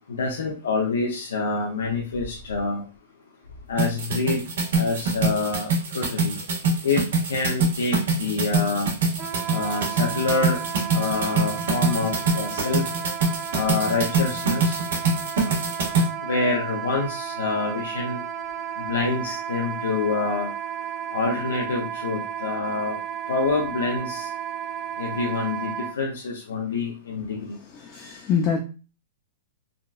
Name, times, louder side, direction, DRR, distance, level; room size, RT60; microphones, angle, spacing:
voice 1, 0.1-2.8 3.7-4.4 4.7-5.7 5.9-6.3 6.8-7.0 7.3-8.9 9.5-10.6 10.9-12.8 13.5-14.8 16.2-18.2 18.8-20.5 21.1-23.0 23.3-24.3 25.0-27.6, left 3 dB, 90° left, -1 dB, 0.6 m, -26 dB
sound 1, 3.8-16.1, right 3 dB, 75° right, 1.5 m, -24 dB
Wind instrument woodwind instrument, 9.2-25.9, right 8 dB, 20° right, 0.5 m, -33 dB
voice 2, 27.8-28.6, left 6 dB, 30° left, 1 dB, 0.5 m, -25 dB
3.7 x 2.2 x 2.3 m, 0.34 s
hypercardioid pair, 145°, 0 cm